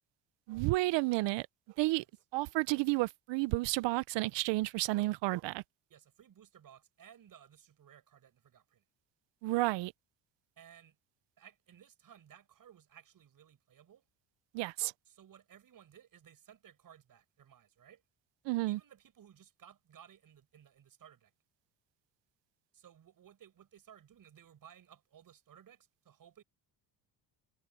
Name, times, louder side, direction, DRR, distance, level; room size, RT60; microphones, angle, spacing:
voice 1, 0.5-1.5 1.8-2.0 2.3-5.6 9.4-9.9 14.5-14.9 18.4-18.8, right 20 dB, 75° right, 0.7 m, -31 dB
voice 2, 5.9-8.8 10.6-11.0 11.4-14.0 15.0-18.0 18.7-21.3 22.7-26.4, right 9 dB, 50° right, 6.4 m, -59 dB
cardioid pair, 105°, 44 cm